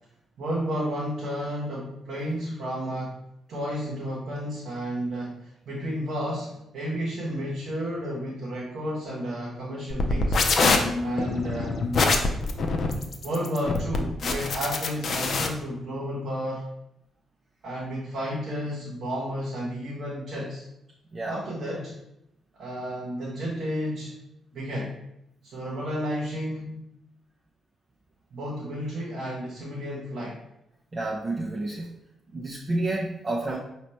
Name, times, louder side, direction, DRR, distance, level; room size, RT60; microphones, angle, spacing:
voice 1, 0.4-3.2 3.5-10.4 11.0-11.7 13.2-16.6 17.6-20.7 21.2-21.9 22.6-24.1 24.5-25.0 25.4-26.8 28.3-30.4, equal, 60° right, -5 dB, 0.9 m, -32 dB
sound 1, 9.9-15.5, left 3 dB, 50° left, 0.5 m, -24 dB
voice 2, 30.9-31.9 32.3-33.6, right 2 dB, 35° right, -2 dB, 0.6 m, -29 dB
5.0 x 2.9 x 3.1 m, 0.84 s
hypercardioid pair, 40°, 0 cm